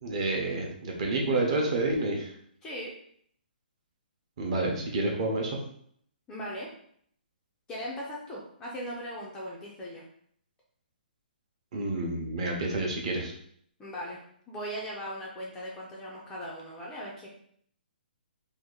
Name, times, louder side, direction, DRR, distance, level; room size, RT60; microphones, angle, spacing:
voice 1, 0.0-2.3 4.4-5.6 11.7-13.3, right 2 dB, 35° right, 0 dB, 0.7 m, -29 dB
voice 2, 2.6-3.0 6.3-6.7 7.7-10.0 13.8-17.3, equal, 10° left, -4 dB, 0.3 m, -39 dB
2.8 x 2.4 x 3.7 m, 0.65 s
hypercardioid pair, 165°, 5 cm